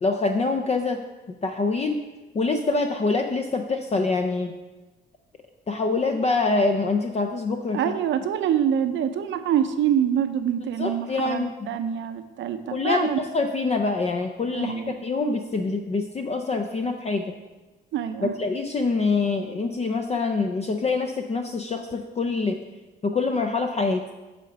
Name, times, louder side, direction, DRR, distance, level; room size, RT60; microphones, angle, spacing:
voice 1, 0.0-1.0 1.4-2.0 2.3-4.5 5.7-7.9 10.8-11.5 12.7-14.7 15.0-17.3 18.2-22.6 23.0-24.0, left 3 dB, 30° left, 5 dB, 0.6 m, -25 dB
voice 2, 7.7-13.2 14.5-14.9 17.9-18.3, right 9 dB, 70° right, 9 dB, 0.6 m, -25 dB
8.3 x 3.8 x 5.8 m, 1.2 s
cardioid pair, 90°, 20 cm